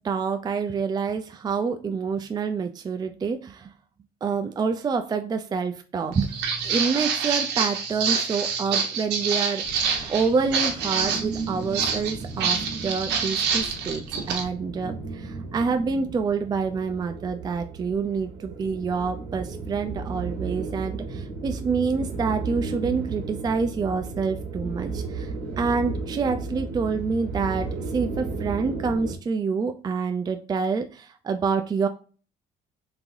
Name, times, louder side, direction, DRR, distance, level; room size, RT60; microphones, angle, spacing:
voice 1, 0.0-3.7 4.2-6.3 6.6-9.8 10.1-31.9, right 5 dB, 25° right, 7 dB, 0.4 m, -27 dB
Walk footsteps, 6.1-14.4, right 6 dB, 90° right, 0.9 m, -27 dB
sound 1, 9.6-29.2, right 4 dB, 75° right, 1.4 m, -34 dB
3.5 x 3.3 x 2.5 m, 0.38 s
cardioid pair, 110°, 17 cm